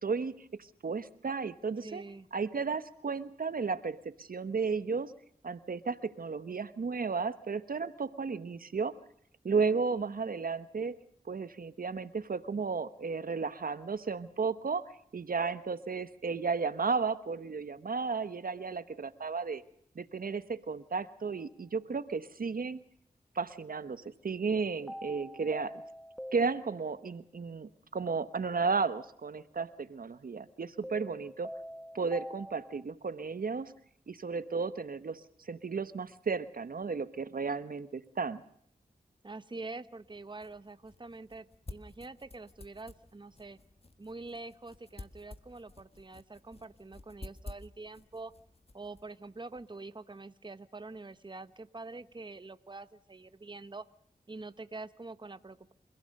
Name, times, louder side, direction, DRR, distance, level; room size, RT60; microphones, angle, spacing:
voice 1, 0.0-2.0 2.3-5.1 5.4-9.0 9.4-11.0 11.3-19.6 20.0-22.8 23.3-25.8 26.3-31.5 31.9-33.7 34.1-38.4, right 5 dB, 65° right, 13 dB, 1.1 m, -34 dB
voice 2, 1.8-2.3 39.2-43.6 44.0-48.3 48.7-53.9 54.3-55.7, right 3 dB, 30° right, 13 dB, 1.1 m, -45 dB
sound 1, 21.2-21.4 24.9-27.2 30.8-32.8, equal, ahead, 0.9 m, -45 dB
sound 2, 39.9-49.8, left 2 dB, 40° left, 1.6 m, -52 dB
29.5 x 16.5 x 6.6 m, 0.67 s
cardioid pair, 45°, 16 cm